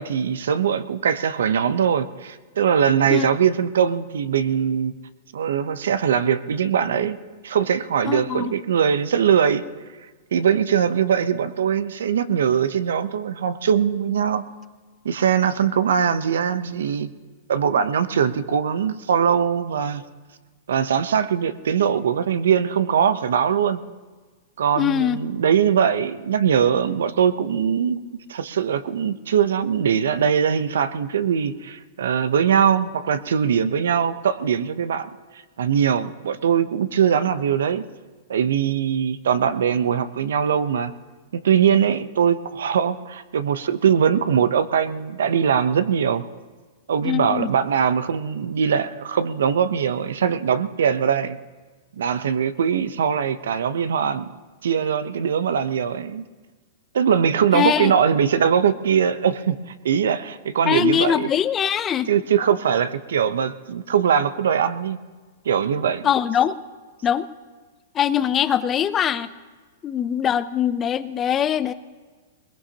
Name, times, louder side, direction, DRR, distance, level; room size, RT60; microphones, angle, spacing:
voice 1, 0.0-5.0 5.3-7.2 7.4-9.6 10.3-14.4 15.0-17.1 17.5-20.0 20.7-23.8 24.6-28.0 28.3-35.1 35.6-37.9 38.3-40.9 41.3-46.2 46.9-51.4 52.0-54.3 54.6-56.2 56.9-59.6 59.8-61.3 62.1-65.0 65.4-66.0, right 8 dB, 80° right, 13 dB, 0.7 m, -21 dB
voice 2, 8.0-8.5 24.8-25.2 47.0-47.5 57.5-57.9 60.7-62.1 66.0-66.6 67.0-67.3 67.9-69.3 69.8-71.7, left 9 dB, 25° left, 14 dB, 0.5 m, -22 dB
21.0 x 20.5 x 2.9 m, 1.4 s
hypercardioid pair, 135°, 0 cm